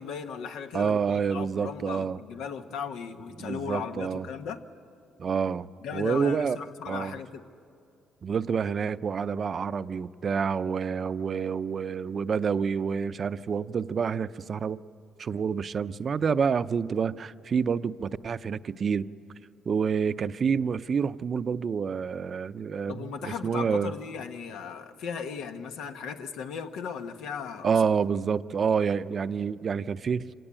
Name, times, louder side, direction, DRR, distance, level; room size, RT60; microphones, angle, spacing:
voice 1, 0.0-4.6 5.8-7.4 22.9-27.7, left 6 dB, 90° left, 7 dB, 1.2 m, -37 dB
voice 2, 0.7-2.2 3.4-4.3 5.2-6.6 6.9-7.2 8.2-14.8 15.2-19.1 19.7-23.9 27.6-30.3, right 6 dB, 50° right, 14 dB, 0.5 m, -28 dB
25.5 x 17.0 x 8.8 m, 2.6 s
cardioid pair, 90°, 0 cm